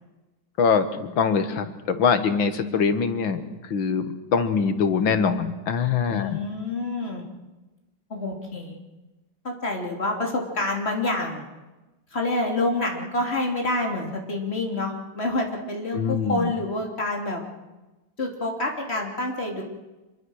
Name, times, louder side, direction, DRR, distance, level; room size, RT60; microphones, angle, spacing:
voice 1, 0.6-6.4 15.9-16.5, left 6 dB, 85° left, 9 dB, 2.3 m, -23 dB
voice 2, 6.1-7.2 8.1-8.8 9.4-11.5 12.1-17.4 18.2-19.6, left 2 dB, 30° left, 1 dB, 3.5 m, -27 dB
26.5 x 22.5 x 6.5 m, 1.1 s
omnidirectional pair, 2.0 m